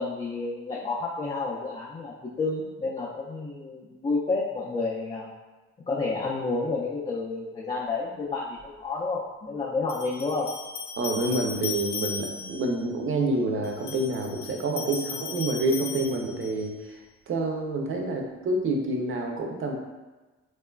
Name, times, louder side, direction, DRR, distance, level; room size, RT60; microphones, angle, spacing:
voice 1, 0.0-5.3 5.9-10.5 12.4-12.5, left 3 dB, 20° left, -5 dB, 0.3 m, -30 dB
sound 1, 8.6-8.7 9.9-12.7 13.6-16.7, left 5 dB, 65° left, 0.6 m, -37 dB
voice 2, 11.0-17.0 17.3-19.7, right 2 dB, 45° right, 2 dB, 0.5 m, -28 dB
3.0 x 2.2 x 2.2 m, 1.2 s
cardioid pair, 90°, 30 cm